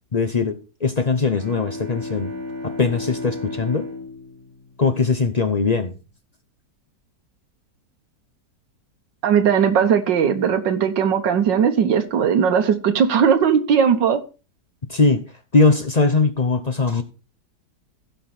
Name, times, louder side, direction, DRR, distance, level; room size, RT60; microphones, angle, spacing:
voice 1, 0.1-2.3 2.6-3.9 4.8-5.9 14.9-15.3 15.5-17.0, left 4 dB, 40° left, 8 dB, 0.5 m, -20 dB
Bowed string instrument, 1.1-5.7, left 2 dB, 30° right, 3.5 m, -34 dB
voice 2, 9.2-14.2, right 7 dB, 90° right, 7 dB, 1.8 m, -18 dB
15.5 x 5.8 x 4.2 m, 0.32 s
omnidirectional pair, 1.9 m